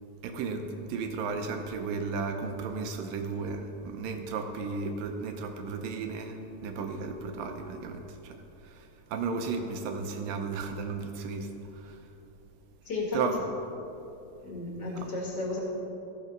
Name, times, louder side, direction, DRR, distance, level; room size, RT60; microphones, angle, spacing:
voice 1, 0.2-12.1 13.1-13.4 14.8-15.1, right 4 dB, 80° right, 5 dB, 2.4 m, -34 dB
voice 2, 12.8-13.2 14.4-15.6, left 3 dB, 40° left, -3 dB, 1.6 m, -33 dB
15.5 x 5.7 x 5.2 m, 2.8 s
omnidirectional pair, 4.1 m